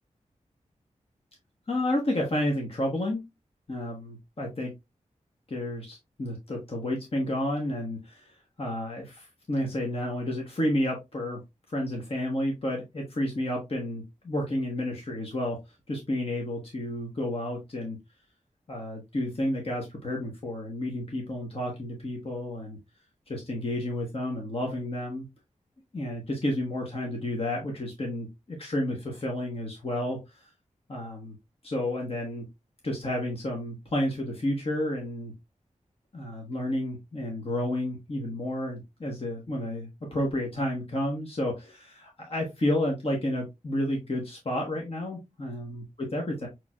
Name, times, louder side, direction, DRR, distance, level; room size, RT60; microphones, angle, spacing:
voice 1, 1.7-3.2 3.7-4.7 5.5-8.3 8.6-11.4 11.7-15.6 15.9-18.0 18.7-22.8 23.3-25.2 25.9-30.5 30.9-31.4 31.6-32.5 32.8-35.3 36.1-45.8 46.1-46.5, left 1 dB, 45° left, 0 dB, 1.2 m, -31 dB
5.8 x 3.2 x 2.3 m, 0.22 s
wide cardioid pair, 60°, 13 cm